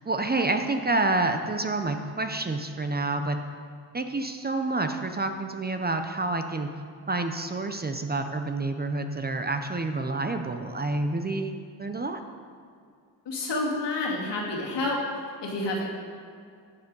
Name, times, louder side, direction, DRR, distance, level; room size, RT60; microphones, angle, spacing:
voice 1, 0.1-3.4 3.9-6.7 7.1-11.5 11.8-12.2, right 2 dB, 20° right, 6 dB, 0.7 m, -28 dB
voice 2, 13.3-15.0 15.4-15.8, left 2 dB, 70° left, -2 dB, 2.5 m, -29 dB
11.5 x 7.2 x 5.4 m, 2.3 s
cardioid pair, 80°, 44 cm